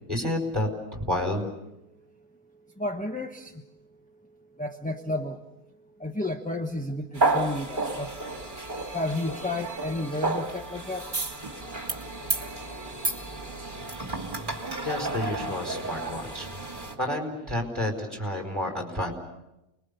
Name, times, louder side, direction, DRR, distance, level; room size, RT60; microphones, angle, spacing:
voice 1, 0.1-1.5 14.8-16.5 17.0-19.1, left 1 dB, 15° right, 2 dB, 4.6 m, -30 dB
voice 2, 2.8-3.6 4.6-5.4 6.0-8.3 8.9-11.1 14.4-14.6, left 2 dB, 5° left, 4 dB, 1.1 m, -32 dB
sound 1, 7.1-16.9, right 2 dB, 35° right, 2.8 m, -31 dB
29.0 x 21.5 x 6.9 m, 0.92 s
omnidirectional pair, 1.5 m